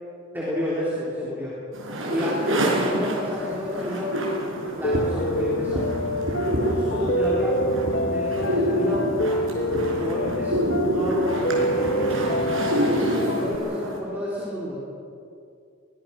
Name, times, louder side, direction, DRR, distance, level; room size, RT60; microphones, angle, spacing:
voice 1, 0.3-1.6 2.1-4.2 4.7-5.9 6.5-7.6 7.9-9.2 10.0-12.5 12.9-14.8, left 1 dB, 10° right, -7 dB, 3.9 m, -30 dB
sound 1, 1.7-14.0, right 1 dB, 90° right, 5.4 m, -27 dB
Piano, 4.8-13.6, equal, 65° left, 1.1 m, -26 dB
sound 2, 4.9-5.3 5.7-7.3 7.6-8.1 8.4-8.6 8.9-11.3 11.6-12.1 12.4-12.6 12.9-13.1, right 1 dB, 45° right, 3.6 m, -33 dB
23.5 x 20.5 x 6.0 m, 2.5 s
head